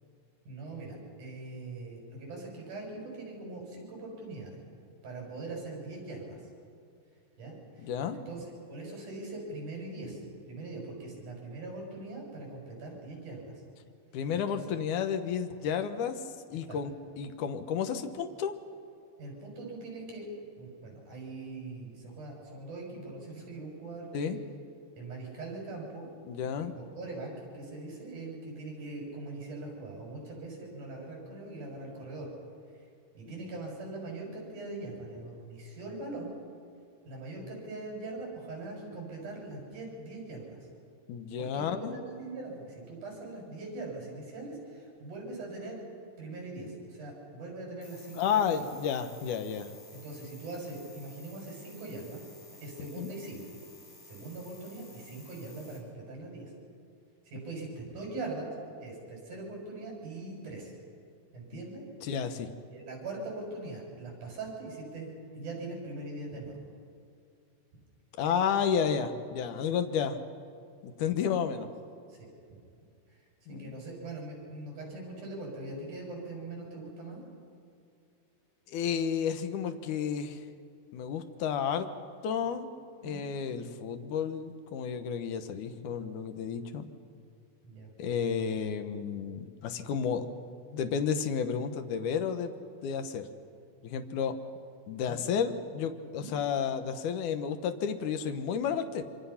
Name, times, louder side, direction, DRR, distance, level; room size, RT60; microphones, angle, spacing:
voice 1, 0.4-4.6 5.0-6.4 7.4-13.6 14.5-14.6 16.7-16.8 19.2-20.3 20.5-24.4 25.0-26.1 26.6-32.3 32.8-32.9 33.1-36.3 37.0-40.7 41.4-45.8 46.2-48.7 49.9-52.2 52.6-53.4 54.0-56.5 57.2-58.5 58.8-60.7 61.3-61.8 62.7-66.6 71.2-71.7 72.1-72.3 73.5-77.2 83.0-83.2 87.6-87.9 95.1-95.2 96.1-96.3, right 2 dB, 65° right, -1 dB, 8.1 m, -42 dB
voice 2, 7.8-8.2 14.1-16.2 16.5-18.5 24.1-24.4 26.2-26.7 41.1-42.0 48.2-49.7 53.0-53.1 61.5-61.6 62.0-62.5 68.2-70.2 70.8-71.7 73.5-73.8 78.7-80.4 80.9-81.9 82.2-82.7 83.0-86.9 88.0-90.3 90.7-92.5 92.8-93.3 93.8-94.4 94.9-99.0, left 7 dB, 75° left, 7 dB, 2.5 m, -31 dB
sound 1, 47.8-55.8, left 2 dB, 55° left, 5.5 m, -54 dB
25.5 x 25.0 x 5.8 m, 2.4 s
omnidirectional pair, 3.7 m